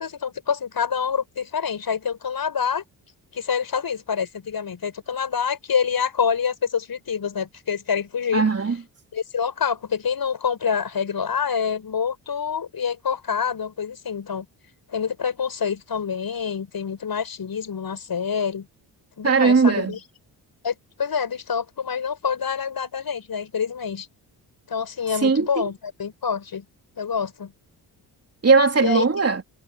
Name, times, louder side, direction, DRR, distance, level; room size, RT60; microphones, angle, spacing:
voice 1, 0.0-2.8 3.3-8.4 9.1-14.5 14.9-18.7 19.2-20.0 20.6-24.1 24.7-26.7 27.0-27.5 28.8-29.1, left 6 dB, 50° left, 7.4 m, -26 dB
voice 2, 8.3-8.8 19.2-19.9 25.1-25.7 28.4-29.4, right 4 dB, 30° right, 3.2 m, -19 dB
supercardioid pair, 60°, 47 cm